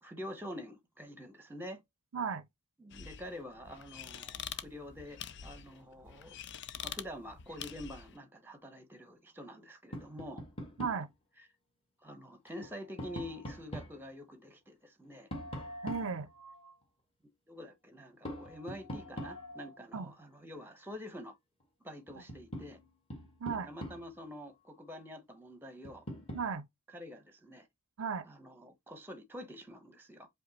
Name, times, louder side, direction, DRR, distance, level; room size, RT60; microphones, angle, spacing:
voice 1, 0.0-1.8 2.8-6.4 6.7-10.4 12.0-15.3 17.5-21.3 21.8-22.8 23.7-26.0 26.9-27.7 28.2-30.3, equal, 10° right, 0.9 m, -47 dB
voice 2, 2.1-2.4 10.8-11.1 15.8-16.3 19.9-20.1 22.1-22.2 23.4-23.7 26.3-26.7 28.0-28.3, right 5 dB, 65° right, 0.6 m, -35 dB
sound 1, 2.9-8.2, left 9 dB, 55° left, 0.5 m, -46 dB
Tap, 9.9-11.1 12.5-14.0 15.3-16.7 18.2-19.8 21.6-21.7 22.1-24.3 25.8-26.5, equal, 25° left, 1.6 m, -43 dB
5.2 x 2.4 x 4.0 m
head